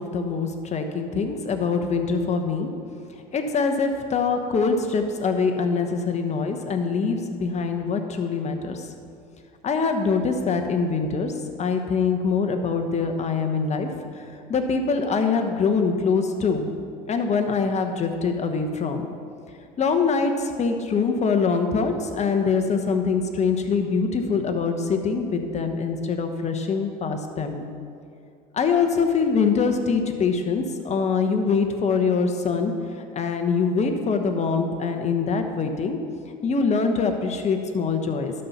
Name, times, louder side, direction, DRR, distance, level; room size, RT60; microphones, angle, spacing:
voice 1, 0.0-2.7 3.3-8.8 9.6-11.3 11.6-13.9 14.5-16.7 17.1-19.0 19.8-27.6 28.5-32.7 33.1-36.0 36.4-38.3, left 5 dB, 35° left, 6 dB, 1.1 m, -24 dB
11.5 x 4.4 x 5.5 m, 2.4 s
hypercardioid pair, 80°, 20 cm